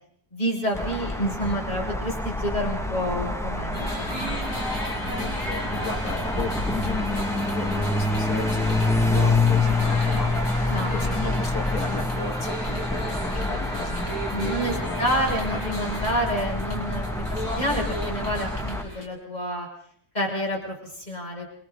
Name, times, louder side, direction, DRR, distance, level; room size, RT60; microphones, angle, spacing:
voice 1, 0.3-4.5 10.7-11.2 14.3-19.7 20.1-21.5, equal, 25° left, -1 dB, 7.1 m, -29 dB
sound 1, 0.7-18.8, left 2 dB, ahead, 2.1 m, -27 dB
sound 2, 3.7-19.0, equal, 55° left, 8.1 m, -36 dB
voice 2, 4.9-10.3 10.8-15.0 15.5-15.6 17.2-18.0, left 4 dB, 85° left, 5 dB, 3.3 m, -35 dB
28.5 x 28.0 x 4.1 m, 0.64 s
omnidirectional pair, 1.6 m